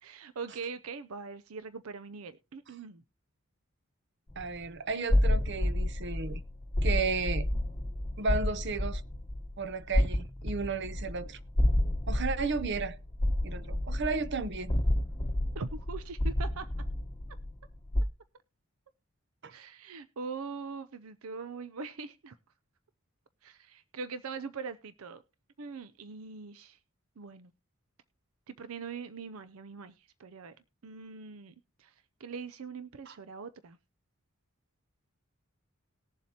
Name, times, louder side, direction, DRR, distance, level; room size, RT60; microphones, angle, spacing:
voice 1, 0.0-3.0 15.5-16.7 19.5-22.4 23.4-25.2 25.6-26.8 27.2-27.5 28.5-30.5 30.8-31.9 32.2-33.8, right 5 dB, 85° right, 0.6 m, -42 dB
sound 1, 4.3-4.7 5.1-18.0, left 1 dB, 20° left, 0.9 m, -30 dB
voice 2, 4.4-6.4 6.8-7.5 8.2-9.0 9.6-11.4 12.1-12.9 13.4-14.7 19.4-19.5 33.1-33.2, right 4 dB, 55° right, 0.8 m, -33 dB
19.5 x 7.3 x 2.8 m
head